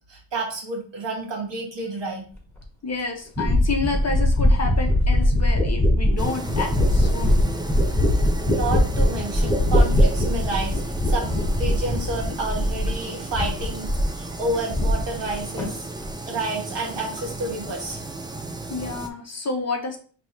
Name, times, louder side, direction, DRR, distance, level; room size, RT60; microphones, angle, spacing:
voice 1, 0.1-2.3 8.5-15.9 16.3-18.0, right 2 dB, 65° right, -1 dB, 1.6 m, -30 dB
sound 1, 2.6-2.7 3.4-13.0 13.3-14.2 14.5-15.3 15.6-16.1, left 1 dB, 5° left, 1.4 m, -21 dB
voice 2, 2.8-7.4 18.7-20.0, left 3 dB, 35° left, 3 dB, 0.8 m, -29 dB
sound 2, 6.2-19.1, right 2 dB, 10° right, 0.4 m, -34 dB
5.3 x 3.0 x 3.0 m, 0.42 s
wide cardioid pair, 120°, 46 cm